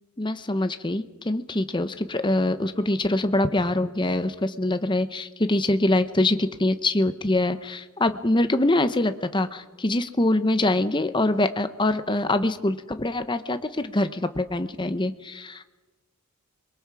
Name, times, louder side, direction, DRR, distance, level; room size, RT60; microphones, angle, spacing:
voice 1, 0.2-15.6, left 1 dB, 20° left, 10 dB, 0.9 m, -24 dB
29.0 x 22.5 x 4.9 m, 1.2 s
head